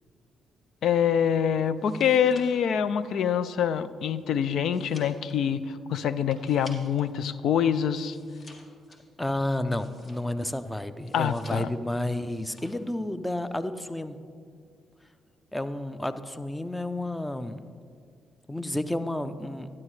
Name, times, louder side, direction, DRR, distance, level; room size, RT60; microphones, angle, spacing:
voice 1, 0.8-8.2 11.1-11.7, left 8 dB, 70° left, 14 dB, 0.4 m, -25 dB
sound 1, 1.7-7.2 7.5-10.5 11.0-11.9 12.2-12.9 13.2-13.6, left 2 dB, 45° left, 1.6 m, -53 dB
voice 2, 9.2-14.2 15.5-17.6 18.5-19.7, left 1 dB, 10° left, 11 dB, 0.6 m, -31 dB
12.0 x 9.6 x 3.2 m, 2.1 s
supercardioid pair, 55°, 0 cm